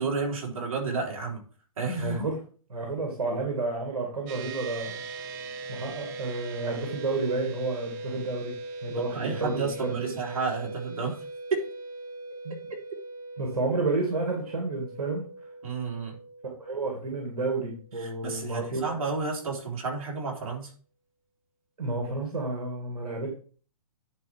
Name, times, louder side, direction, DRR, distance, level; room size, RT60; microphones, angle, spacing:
voice 1, 0.0-1.4 1.8-2.2 9.0-11.2 11.5-11.7 12.7-12.8 15.6-16.2 18.0-20.7, right 4 dB, 70° right, 0 dB, 3.5 m, -31 dB
voice 2, 2.0-2.4 2.7-5.0 5.7-8.5 8.8-10.1 12.4-12.5 13.4-15.2 16.6-18.8 21.8-23.3, right 3 dB, 85° right, 0 dB, 2.5 m, -30 dB
sound 1, 4.3-17.9, right 3 dB, 35° right, 1.4 m, -40 dB
10.5 x 4.5 x 4.6 m, 0.41 s
hypercardioid pair, 140°, 19 cm